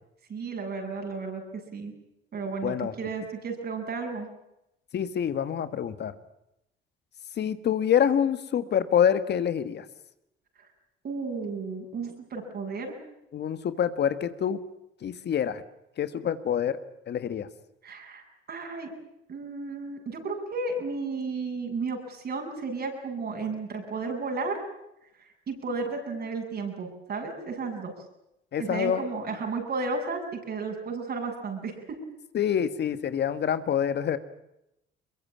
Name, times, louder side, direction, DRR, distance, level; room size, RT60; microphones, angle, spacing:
voice 1, 0.3-1.9 2.3-4.3 10.6-10.7 11.0-13.0 17.8-18.9 19.3-24.6 25.2-27.9 28.6-32.0, right 4 dB, 50° right, 3 dB, 7.7 m, -33 dB
voice 2, 2.6-2.9 4.9-6.1 7.4-9.8 13.3-14.6 15.0-15.6 16.0-16.8 17.1-17.5 28.5-29.0 32.3-34.2, left 8 dB, 55° left, 12 dB, 1.6 m, -26 dB
22.5 x 22.0 x 8.7 m, 0.86 s
cardioid pair, 95°, 21 cm